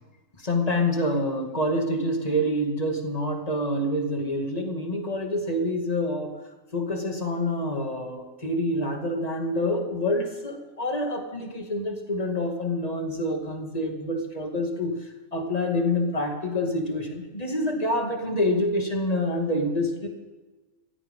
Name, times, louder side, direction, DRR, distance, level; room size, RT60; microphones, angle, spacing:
voice 1, 0.4-6.4 6.7-15.0 15.3-20.1, left 1 dB, 25° left, 2 dB, 2.5 m, -27 dB
23.0 x 16.5 x 3.8 m, 1.2 s
omnidirectional pair, 1.5 m